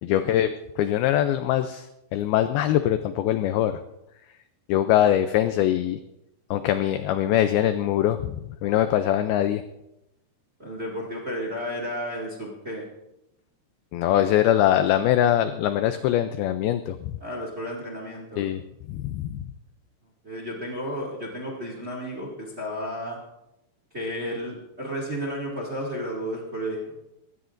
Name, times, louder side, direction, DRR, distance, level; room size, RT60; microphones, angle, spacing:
voice 1, 0.0-0.5 0.8-3.8 4.7-6.0 6.5-9.6 13.9-17.2 18.4-18.6 18.9-19.4, left 11 dB, 90° left, 9 dB, 2.1 m, -22 dB
voice 2, 10.6-12.8 17.2-18.5 20.2-23.2 23.9-26.9, equal, 25° right, -1 dB, 1.5 m, -32 dB
22.0 x 15.5 x 2.6 m, 0.88 s
omnidirectional pair, 5.1 m